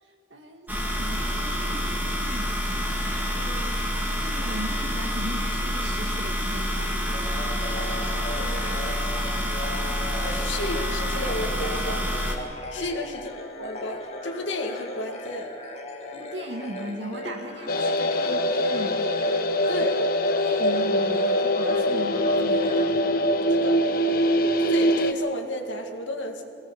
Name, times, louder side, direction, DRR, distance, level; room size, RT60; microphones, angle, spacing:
voice 1, 0.0-2.6 3.9-7.2 10.2-10.4 12.8-13.0 16.1-19.0 20.4-22.9, right 1 dB, 70° right, 2 dB, 2.0 m, -38 dB
sound 1, 0.7-12.4, equal, 10° right, 2.3 m, -27 dB
voice 2, 3.3-3.7 8.4-8.9 10.2-12.1 12.7-15.5 19.7-20.0 23.5-23.8 24.6-26.4, left 1 dB, 80° left, 3 dB, 2.1 m, -32 dB
sound 2, 7.1-23.9, left 1 dB, 35° left, 2.0 m, -38 dB
sound 3, 17.7-25.1, equal, 50° left, 1.0 m, -23 dB
23.5 x 17.5 x 7.2 m, 2.6 s
head